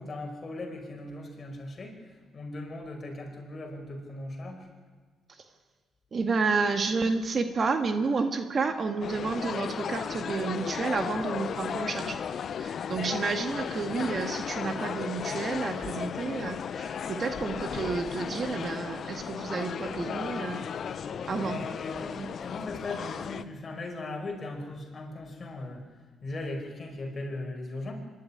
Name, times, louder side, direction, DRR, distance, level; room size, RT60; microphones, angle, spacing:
voice 1, 0.0-4.7 21.4-25.8 26.2-27.9, left 2 dB, 35° left, 2 dB, 5.4 m, -38 dB
voice 2, 6.1-12.2 12.6-20.7 21.3-21.8 22.2-22.3, right 4 dB, 45° right, 8 dB, 1.7 m, -30 dB
sound 1, 9.0-23.4, left 7 dB, 55° left, 0.9 m, -35 dB
24.0 x 12.5 x 9.9 m, 1.4 s
cardioid pair, 90°, 0 cm